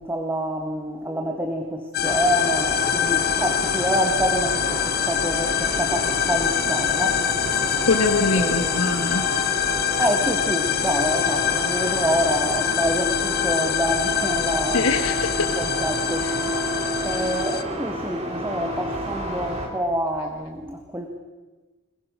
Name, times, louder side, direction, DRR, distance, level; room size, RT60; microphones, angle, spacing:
voice 1, 0.0-7.2 8.3-8.9 10.0-14.9 15.4-16.3 16.6-16.7 17.0-21.1, equal, 10° right, 3 dB, 1.7 m, -27 dB
sound 1, 1.9-17.6, left 10 dB, 45° left, 1.0 m, -25 dB
sound 2, 2.0-19.7, right 2 dB, 30° right, 3.3 m, -30 dB
voice 2, 7.9-9.2 14.7-15.5 16.2-16.3, left 3 dB, 80° left, 4 dB, 1.4 m, -23 dB
22.0 x 21.0 x 6.3 m, 1.2 s
head